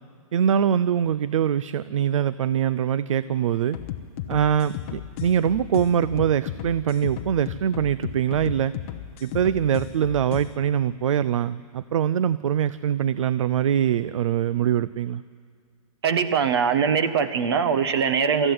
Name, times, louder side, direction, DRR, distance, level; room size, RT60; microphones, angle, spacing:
voice 1, 0.3-3.8 4.3-8.7 9.2-15.2, right 9 dB, 60° right, 17 dB, 0.5 m, -23 dB
sound 1, 3.7-10.5, left 11 dB, 20° left, 0.7 m, -35 dB
voice 2, 16.0-18.5, right 6 dB, 45° right, 10 dB, 1.4 m, -22 dB
23.5 x 14.0 x 9.6 m, 2.2 s
hypercardioid pair, 175°, 19 cm